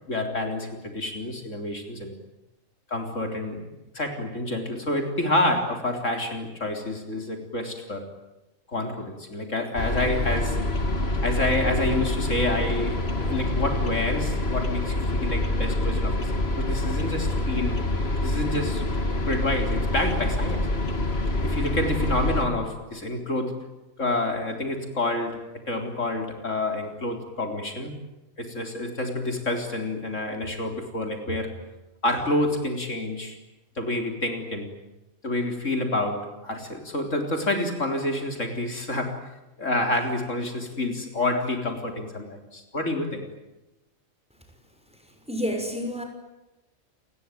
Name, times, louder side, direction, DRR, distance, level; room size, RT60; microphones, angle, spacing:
voice 1, 0.1-2.1 2.9-3.7 3.9-8.1 8.7-10.6 11.2-16.3 16.6-17.8 18.2-18.8 19.3-20.7 21.4-23.6 24.0-27.9 28.4-31.5 32.0-33.4 33.8-34.7 35.2-39.3 39.6-43.2, left 1 dB, 65° left, 4 dB, 4.2 m, -28 dB
sound 1, 9.8-22.5, left 1 dB, 50° left, 2.7 m, -26 dB
voice 2, 45.3-46.0, equal, 5° right, 4 dB, 6.1 m, -28 dB
29.5 x 20.5 x 9.3 m, 1.0 s
omnidirectional pair, 1.4 m